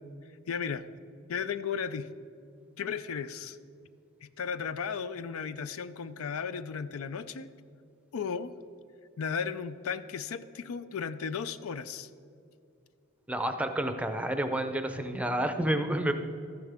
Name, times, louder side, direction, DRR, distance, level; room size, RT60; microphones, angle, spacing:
voice 1, 0.5-0.8 1.3-2.1 2.8-3.6 4.2-7.5 8.1-8.5 9.2-12.1, left 6 dB, 70° left, 13 dB, 0.4 m, -35 dB
voice 2, 13.3-16.1, right 1 dB, 5° right, 7 dB, 0.6 m, -29 dB
13.5 x 10.0 x 3.5 m, 2.6 s
head